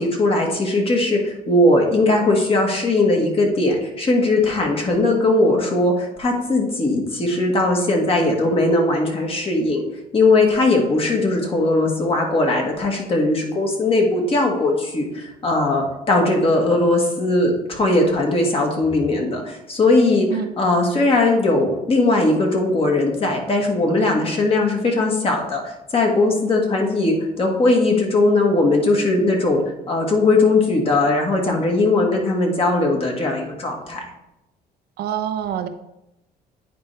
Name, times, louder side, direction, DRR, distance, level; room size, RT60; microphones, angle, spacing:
voice 1, 0.0-9.8 10.1-20.3 20.6-29.6 29.9-34.0, left 2 dB, 35° left, 1 dB, 1.6 m, -19 dB
voice 2, 35.0-35.7, right 9 dB, 70° right, 8 dB, 0.7 m, -25 dB
9.3 x 4.4 x 3.3 m, 0.90 s
cardioid pair, 110°, 17 cm